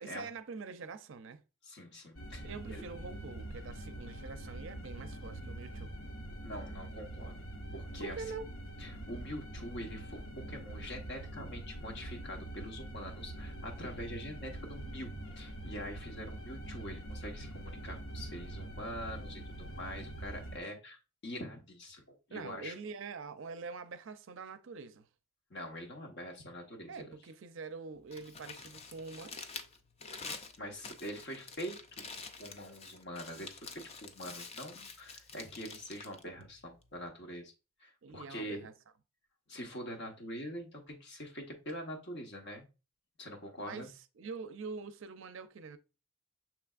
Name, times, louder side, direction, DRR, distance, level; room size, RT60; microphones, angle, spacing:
voice 1, 0.0-1.4 2.4-5.9 6.5-6.6 8.0-8.5 22.3-25.1 26.9-29.4 38.0-38.7 43.7-45.8, right 4 dB, 60° right, 0.4 m, -45 dB
voice 2, 1.6-2.8 6.4-7.4 7.7-8.2 8.8-15.1 15.4-22.7 25.5-27.1 30.6-32.0 32.4-37.5 37.8-38.7 39.5-42.7 43.2-43.9, equal, 55° left, 1.1 m, -44 dB
sound 1, 2.2-20.6, right 1 dB, 75° left, 0.8 m, -44 dB
Crumpling crinkling, 27.9-37.1, left 4 dB, 30° left, 0.4 m, -48 dB
6.0 x 3.3 x 2.4 m
head